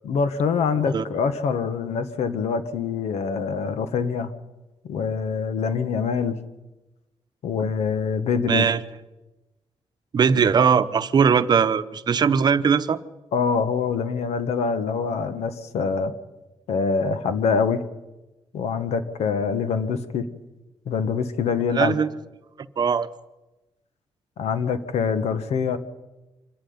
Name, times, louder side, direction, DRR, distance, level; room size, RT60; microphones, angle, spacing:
voice 1, 0.0-4.3 4.8-6.4 7.4-8.6 13.3-16.1 16.7-17.8 18.5-20.2 20.8-21.9 24.4-25.8, left 5 dB, 90° left, 10 dB, 1.5 m, -25 dB
voice 2, 8.5-8.8 10.1-13.0 21.7-22.1 22.8-23.1, right 6 dB, 40° right, 11 dB, 0.9 m, -20 dB
26.0 x 10.5 x 9.6 m, 1.1 s
wide cardioid pair, 150°, 11 cm